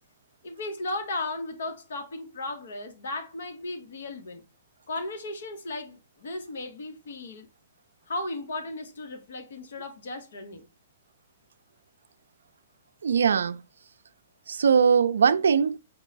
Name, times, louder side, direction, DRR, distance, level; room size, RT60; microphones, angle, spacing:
voice 1, 0.4-4.4 4.9-7.5 8.1-10.7, left 2 dB, 80° left, 1.2 m, -35 dB
voice 2, 13.0-13.6 14.5-15.8, right 6 dB, 90° right, 0.4 m, -21 dB
4.7 x 2.2 x 3.8 m
hypercardioid pair, 140°, 0 cm